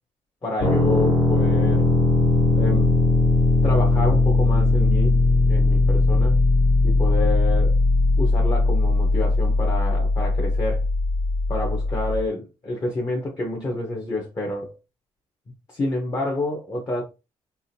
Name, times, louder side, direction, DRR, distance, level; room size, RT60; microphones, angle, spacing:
voice 1, 0.4-1.9 2.5-2.9 3.6-6.4 6.8-7.8 8.2-10.8 11.5-14.7 15.7-17.0, left 2 dB, 35° left, 1.2 m, -28 dB
sound 1, 0.6-12.2, left 2 dB, 80° left, 2.1 m, -19 dB
3.6 x 2.6 x 2.8 m
cardioid pair, 95°, 11 cm